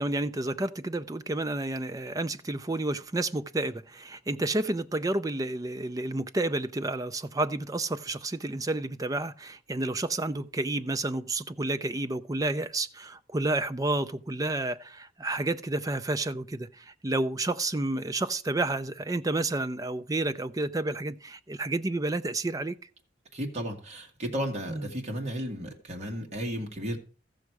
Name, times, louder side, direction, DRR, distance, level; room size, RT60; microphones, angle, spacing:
voice 1, 0.0-22.8 24.7-24.9, right 2 dB, 20° right, 0.5 m, -30 dB
voice 2, 23.3-27.0, equal, 40° right, 1.7 m, -34 dB
14.5 x 6.5 x 4.7 m
head